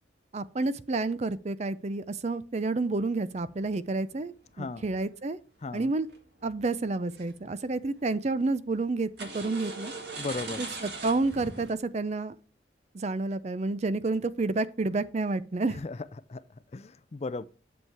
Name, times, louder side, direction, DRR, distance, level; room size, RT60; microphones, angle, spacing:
voice 1, 0.3-5.4 5.7-6.1 6.4-9.9 10.6-12.3 12.9-15.8, right 3 dB, 35° right, 0.5 m, -30 dB
sound 1, 3.5-4.9 6.1-6.4 6.8-7.3 7.6-8.1 9.2-11.7, right 3 dB, 60° right, 1.9 m, -40 dB
voice 2, 5.6-5.9 10.2-10.6 15.7-16.4 16.7-17.5, left 3 dB, 35° left, 0.4 m, -36 dB
8.1 x 7.3 x 4.6 m
head